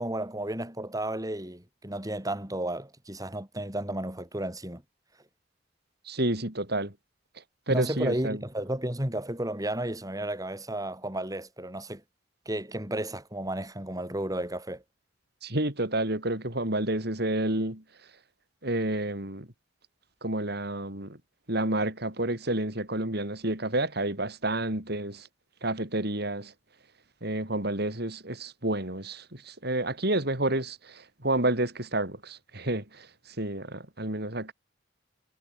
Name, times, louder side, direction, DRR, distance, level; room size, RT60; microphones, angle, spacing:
voice 1, 0.0-4.8 7.7-12.0 12.5-14.8, right 1 dB, 20° right, 5.6 m, -33 dB
voice 2, 6.0-6.9 7.3-8.4 15.4-17.8 18.6-19.5 20.2-21.2 21.5-25.3 25.6-26.5 27.2-34.5, right 1 dB, 60° right, 6.0 m, -30 dB
head